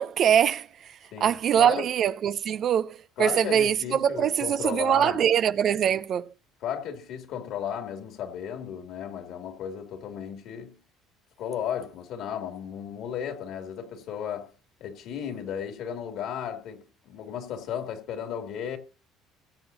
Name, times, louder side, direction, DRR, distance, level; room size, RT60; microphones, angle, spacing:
voice 1, 0.0-6.3, right 9 dB, 55° right, 0.6 m, -23 dB
voice 2, 1.1-1.9 3.2-5.2 6.6-10.8 11.4-14.5 14.8-18.8, left 8 dB, 65° left, 2.8 m, -34 dB
22.0 x 7.8 x 2.8 m
hypercardioid pair, 75°, 0 cm